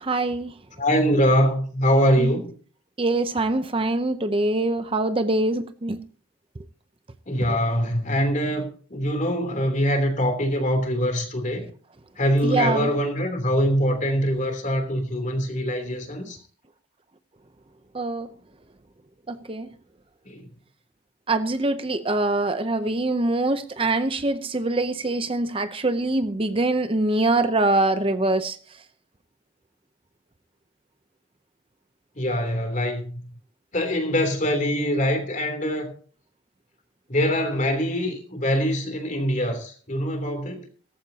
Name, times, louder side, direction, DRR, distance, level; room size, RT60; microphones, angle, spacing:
voice 1, 0.0-0.6 2.2-2.4 3.0-6.0 12.4-12.9 17.9-18.3 19.3-19.7 21.3-28.8, right 2 dB, 25° right, 0.7 m, -24 dB
voice 2, 0.8-2.5 7.3-11.7 12.2-16.4 20.2-20.5 32.2-33.1 33.7-35.9 37.1-40.7, equal, 40° left, 3.2 m, -23 dB
17.0 x 14.5 x 2.8 m
head